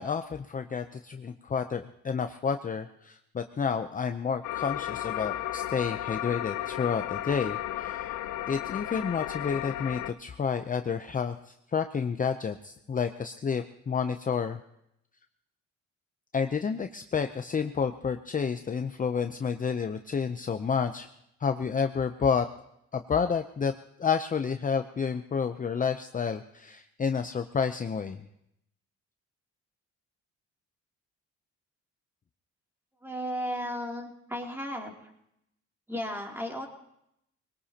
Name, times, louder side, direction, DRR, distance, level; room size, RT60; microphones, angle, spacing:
voice 1, 0.0-8.1 8.5-14.6 16.3-21.1 21.4-22.5 22.9-23.7 24.0-28.2, left 6 dB, 25° left, 8 dB, 0.6 m, -30 dB
sound 1, 4.4-10.1, left 14 dB, 85° left, 0.7 m, -34 dB
voice 2, 33.0-34.9 35.9-36.7, equal, 10° right, 0 dB, 2.8 m, -34 dB
21.0 x 19.5 x 2.9 m, 0.79 s
cardioid pair, 90°, 30 cm